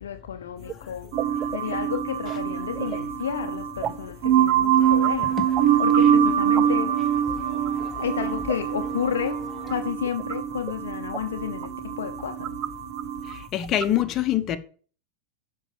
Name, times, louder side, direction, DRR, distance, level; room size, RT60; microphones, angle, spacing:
voice 1, 0.0-1.1 1.5-5.4 5.8-6.9 8.0-12.6, left 8 dB, 80° left, 0.7 m, -31 dB
sound 1, 0.7-0.8 1.2-3.0 3.8-4.1 4.4-4.6 4.9-5.1 5.6-6.0 6.4-6.7 7.2-7.3 7.5-8.6 9.7-9.8 10.0-10.4 10.7-10.8 11.1-11.2 11.6-11.7 12.2-12.7 13.0-13.1 13.3-13.4 13.6-13.9, right 11 dB, 40° right, 0.5 m, -32 dB
sound 2, 1.1-13.4, right 9 dB, 60° right, 1.4 m, -24 dB
sound 3, 4.8-9.9, left 5 dB, 15° left, 1.7 m, -41 dB
voice 2, 13.5-14.6, left 12 dB, 40° left, 1.1 m, -24 dB
7.2 x 5.7 x 7.1 m
hypercardioid pair, 95°, 0 cm